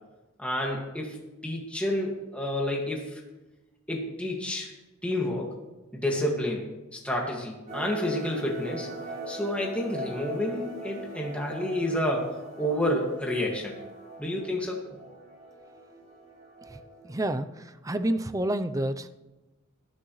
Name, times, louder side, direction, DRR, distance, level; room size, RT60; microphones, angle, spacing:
voice 1, 0.4-1.2 1.4-3.2 3.9-4.7 5.0-5.5 5.9-6.7 6.9-8.9 9.3-13.8 14.2-14.8, left 1 dB, 5° left, -2 dB, 2.0 m, -29 dB
sound 1, 7.7-17.2, right 1 dB, 40° right, 4.5 m, -41 dB
voice 2, 17.0-19.1, right 1 dB, 15° right, 10 dB, 0.5 m, -29 dB
20.0 x 10.5 x 3.2 m, 1.1 s
head